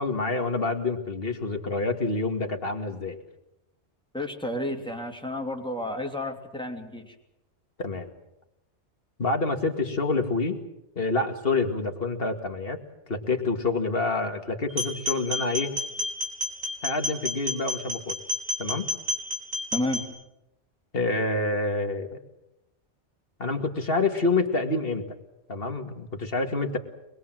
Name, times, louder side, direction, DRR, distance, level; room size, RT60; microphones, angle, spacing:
voice 1, 0.0-3.2 7.8-8.1 9.2-10.6 11.0-12.8 13.1-15.7 16.8-18.2 18.6-18.9 20.9-22.1 23.4-25.0 25.5-26.8, left 3 dB, 55° left, 5 dB, 2.4 m, -27 dB
voice 2, 4.1-7.1 19.7-20.0, left 1 dB, 5° left, 2 dB, 3.0 m, -31 dB
sound 1, 14.7-20.0, left 1 dB, 70° right, 4.1 m, -30 dB
24.5 x 21.5 x 7.7 m, 0.90 s
omnidirectional pair, 1.2 m